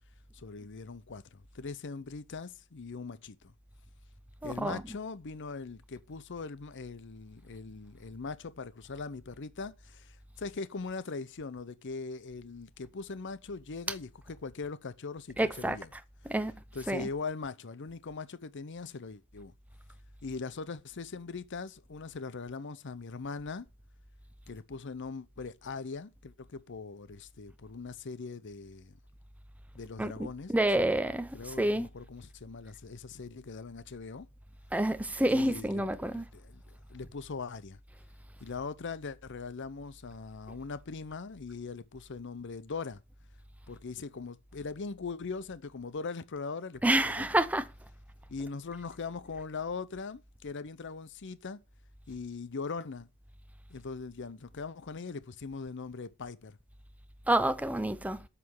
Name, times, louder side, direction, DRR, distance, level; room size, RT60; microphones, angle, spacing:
voice 1, 0.3-3.5 4.4-15.9 16.7-19.5 20.2-23.7 24.5-28.9 29.7-30.5 31.3-34.3 35.3-36.6 36.9-37.8 38.4-43.0 43.7-47.3 48.3-51.6 52.1-53.1 53.7-56.6, left 4 dB, 55° left, 0.7 m, -41 dB
voice 2, 4.4-4.8 15.4-16.5 16.8-17.1 30.0-31.9 34.7-36.3 46.8-47.7 57.3-58.2, right 1 dB, 5° right, 0.6 m, -29 dB
7.8 x 6.1 x 7.0 m
head